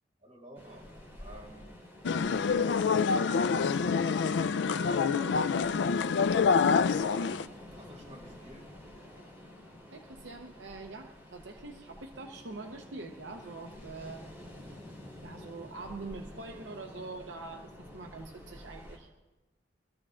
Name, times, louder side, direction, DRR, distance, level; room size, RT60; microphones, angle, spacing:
voice 1, 0.2-0.9 1.2-1.7 2.2-5.9 7.0-8.7, right 1 dB, 35° right, -4 dB, 3.7 m, -50 dB
Ocean, 0.5-19.0, left 1 dB, 10° right, 3.3 m, -50 dB
sound 1, 2.0-7.4, left 5 dB, 75° left, 0.4 m, -26 dB
voice 2, 9.9-14.3 15.2-19.1, right 3 dB, 80° right, 3 dB, 0.8 m, -44 dB
24.0 x 14.0 x 2.5 m, 1.1 s
head